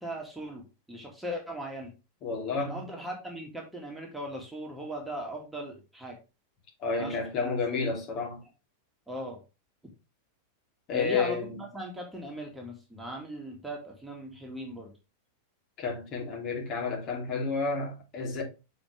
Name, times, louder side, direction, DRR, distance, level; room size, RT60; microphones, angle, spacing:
voice 1, 0.0-1.9 2.6-6.2 7.0-7.9 9.1-9.4 10.9-14.9, equal, 5° right, 2.3 m, -39 dB
voice 2, 2.2-2.8 6.8-8.4 10.9-11.6 15.8-18.4, left 4 dB, 40° left, 2.9 m, -31 dB
7.2 x 5.2 x 3.3 m
figure-of-eight pair, 90°, 0 cm